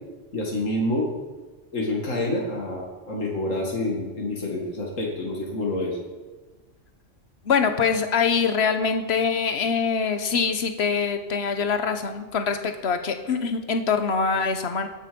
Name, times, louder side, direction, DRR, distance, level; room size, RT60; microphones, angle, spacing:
voice 1, 0.3-1.1 1.7-6.0, left 1 dB, 80° left, -1 dB, 2.7 m, -27 dB
voice 2, 7.4-14.9, left 5 dB, 55° left, 8 dB, 1.4 m, -24 dB
17.0 x 10.5 x 5.3 m, 1.3 s
omnidirectional pair, 1.3 m